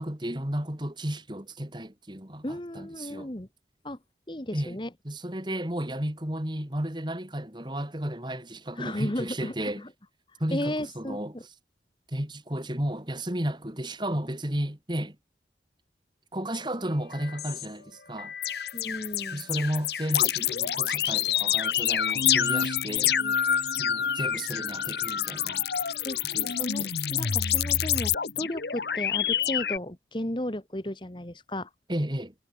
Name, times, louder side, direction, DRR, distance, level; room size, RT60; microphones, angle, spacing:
voice 1, 0.0-3.3 4.5-4.8 5.0-9.8 10.4-11.3 12.1-15.2 16.3-18.3 19.3-23.2 23.8-25.6 26.3-26.5 26.8-26.9 31.9-32.3, right 1 dB, 25° right, 3.0 m, -33 dB
voice 2, 2.4-3.5 3.8-4.0 4.3-4.9 8.8-9.9 10.5-11.5 18.7-19.5 23.2-23.4 26.0-26.2 26.5-31.7, left 1 dB, 25° left, 1.7 m, -34 dB
sound 1, 16.5-16.6 17.1-17.7 18.2-29.8, left 9 dB, 70° left, 1.1 m, -27 dB
head